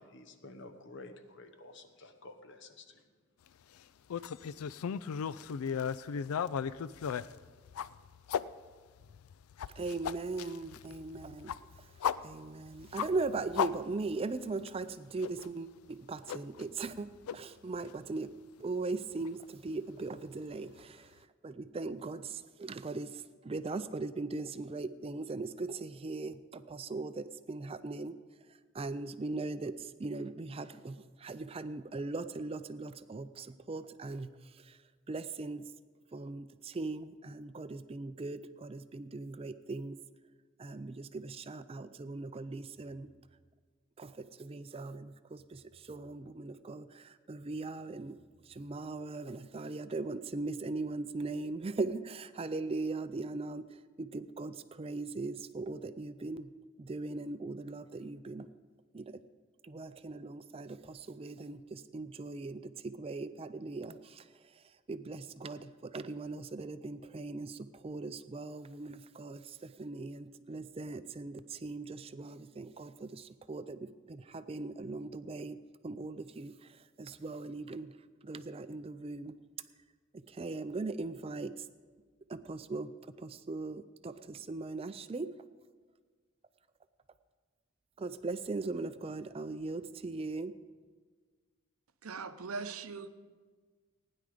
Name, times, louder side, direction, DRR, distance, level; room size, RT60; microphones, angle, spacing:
voice 1, 0.0-3.0 4.1-4.2, left 2 dB, 55° left, 8 dB, 1.0 m, -51 dB
sound 1, 4.1-8.4 9.0-14.3 14.7-14.8 15.2-15.5 16.3-17.0 17.3-17.4 17.9-18.0 19.3-19.4, left 7 dB, 85° left, 0.4 m, -36 dB
voice 2, 9.8-11.5 12.2-17.1 17.3-18.3 18.6-28.2 28.7-34.8 35.1-35.7 36.1-40.0 40.6-43.1 44.0-48.2 48.5-56.5 56.8-58.5 58.9-59.2 59.6-64.3 64.9-77.9 78.2-79.3 80.3-81.7 82.3-85.3 88.0-90.5, right 3 dB, 25° right, 12 dB, 0.4 m, -39 dB
voice 3, 92.0-93.1, right 4 dB, 85° right, 10 dB, 0.7 m, -40 dB
16.0 x 10.0 x 5.0 m, 1.5 s
head